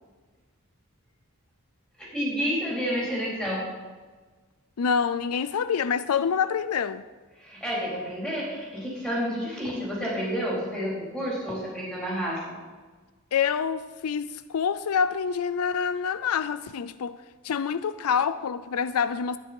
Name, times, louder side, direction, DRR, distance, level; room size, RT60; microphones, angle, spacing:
voice 1, 2.0-3.6 7.4-12.4, equal, 5° left, -6 dB, 4.3 m, -30 dB
voice 2, 4.8-7.0 13.3-17.2 17.4-19.4, left 6 dB, 90° left, 14 dB, 0.4 m, -26 dB
13.0 x 9.7 x 5.4 m, 1.4 s
head